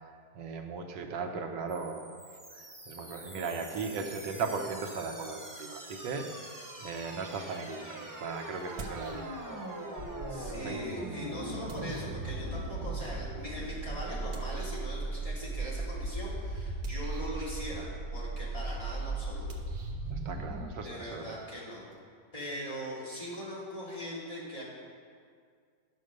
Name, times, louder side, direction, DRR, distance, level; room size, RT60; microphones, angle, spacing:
voice 1, 0.3-2.1 2.9-6.3 6.8-9.7 10.5-10.7 20.1-21.4, right 4 dB, 90° right, 4 dB, 1.6 m, -37 dB
sound 1, 1.7-20.7, right 2 dB, 20° right, 0.6 m, -39 dB
sound 2, 7.6-7.7 8.6-9.6 10.0-12.8 14.3-14.9 16.7-17.5 19.4-22.0, right 3 dB, 65° right, 1.5 m, -49 dB
voice 2, 10.3-19.5 20.8-21.8 22.3-24.6, equal, 20° left, -7 dB, 2.6 m, -40 dB
10.5 x 6.4 x 6.5 m, 2.1 s
omnidirectional pair, 1.9 m